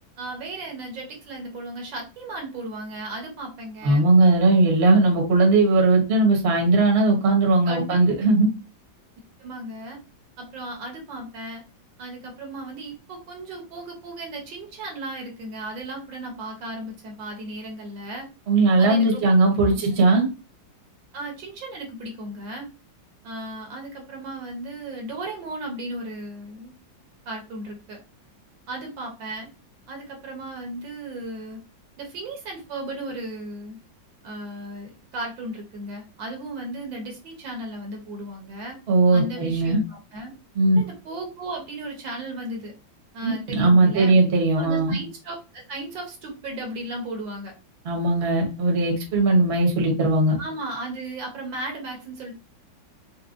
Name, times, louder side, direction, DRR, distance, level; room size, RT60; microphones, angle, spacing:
voice 1, 0.2-4.0 7.7-8.2 9.4-10.0 10.4-11.6 12.0-18.3 18.8-19.2 19.7-20.0 21.1-22.7 23.2-26.7 27.2-28.0 28.7-29.5 29.9-31.6 32.0-33.8 34.2-38.8 39.1-40.3 40.8-42.7 43.1-44.2 44.6-47.5 50.4-52.3, right 1 dB, 75° right, 2 dB, 1.6 m, -35 dB
voice 2, 3.8-8.5 18.5-20.2 38.9-39.8 40.5-40.8 43.2-44.9 47.8-50.4, right 2 dB, 40° right, 0 dB, 1.0 m, -19 dB
4.5 x 2.2 x 2.4 m, 0.30 s
omnidirectional pair, 2.1 m